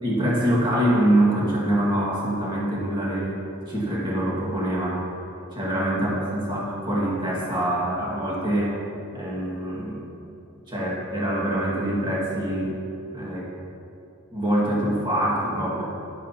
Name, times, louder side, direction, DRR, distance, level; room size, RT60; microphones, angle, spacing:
voice 1, 0.0-3.4 3.7-5.1 5.5-8.7 9.1-10.1 10.7-12.7 13.1-13.5 14.3-15.8, right 1 dB, 20° right, -6 dB, 1.9 m, -24 dB
14.0 x 11.0 x 2.9 m, 2.8 s
head